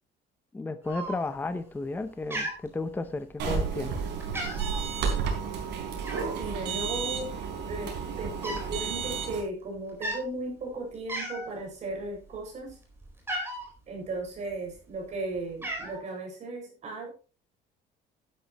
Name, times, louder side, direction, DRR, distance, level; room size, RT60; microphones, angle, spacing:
voice 1, 0.5-4.0, left 3 dB, 10° left, 10 dB, 0.7 m, -33 dB
Cat, 0.9-1.5 1.8-2.1 2.3-3.3 3.8-4.0 4.2-4.8 6.0-6.5 7.3-7.4 7.6-8.7 9.0-9.3 9.9-10.2 10.7-10.8 11.1-11.6 12.0-13.7 14.5-15.1 15.3-16.0, right 1 dB, 15° right, 4.3 m, -36 dB
sound 1, 3.4-9.4, right 6 dB, 75° right, 4.1 m, -32 dB
voice 2, 6.3-7.4 7.7-12.8 13.9-17.1, right 2 dB, 40° right, 1 dB, 6.4 m, -36 dB
12.0 x 11.0 x 3.0 m, 0.36 s
cardioid pair, 165°, 18 cm